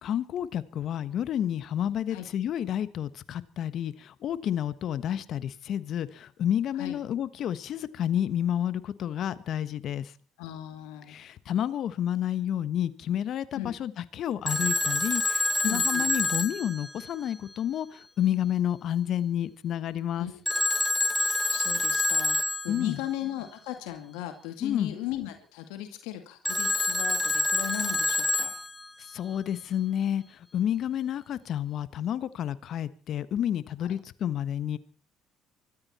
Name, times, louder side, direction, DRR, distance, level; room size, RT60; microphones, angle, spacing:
voice 1, 0.0-10.1 11.1-20.3 22.7-23.0 24.6-24.9 29.1-34.8, left 10 dB, 60° left, 15 dB, 1.3 m, -30 dB
voice 2, 10.4-11.2 13.5-13.7 15.6-16.2 20.2-20.4 21.1-28.5, left 12 dB, 85° left, 7 dB, 2.3 m, -37 dB
Telephone, 14.5-17.6 20.5-23.0 26.5-29.1, left 2 dB, 15° left, 1.6 m, -27 dB
24.5 x 13.5 x 4.3 m, 0.40 s
supercardioid pair, 80°, 0 cm